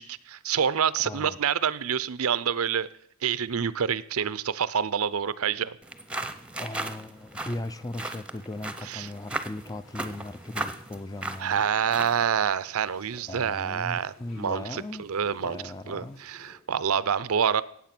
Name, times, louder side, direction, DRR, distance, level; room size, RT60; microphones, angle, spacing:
voice 1, 0.0-2.9 3.2-5.8 8.8-9.1 11.4-15.6 15.9-17.6, right 7 dB, 85° right, 17 dB, 0.6 m, -27 dB
voice 2, 1.0-1.4 6.6-11.6 13.3-15.1 15.4-16.2, left 1 dB, 15° left, 14 dB, 0.4 m, -38 dB
sound 1, 5.8-12.3, right 2 dB, 5° right, 0.7 m, -37 dB
sound 2, 6.6-16.5, left 2 dB, 65° left, 4.2 m, -56 dB
18.0 x 7.5 x 6.0 m, 0.69 s
head